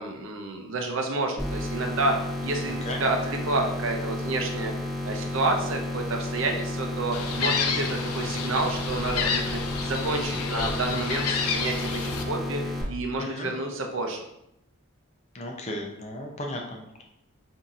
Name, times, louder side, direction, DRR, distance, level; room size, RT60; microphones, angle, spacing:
voice 1, 0.0-2.1 2.4-4.7 5.0-14.2, right 2 dB, 60° right, 3 dB, 0.6 m, -29 dB
sound 1, 1.4-12.8, left 1 dB, ahead, 0.8 m, -32 dB
voice 2, 2.7-3.0 13.2-13.5 15.3-17.0, left 1 dB, 30° left, 1 dB, 0.5 m, -35 dB
Gull seagull, 7.1-12.2, left 5 dB, 85° left, 0.5 m, -30 dB
5.5 x 2.7 x 2.4 m, 0.80 s
head